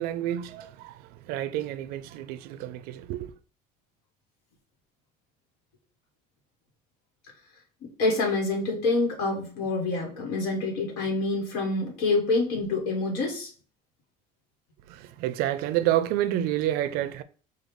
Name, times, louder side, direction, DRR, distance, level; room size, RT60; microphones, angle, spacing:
voice 1, 0.0-3.3 14.9-17.2, right 13 dB, 70° right, 0.4 m, -29 dB
voice 2, 8.0-13.5, left 3 dB, 90° left, 1.2 m, -26 dB
5.1 x 2.3 x 3.0 m
cardioid pair, 160°, 16 cm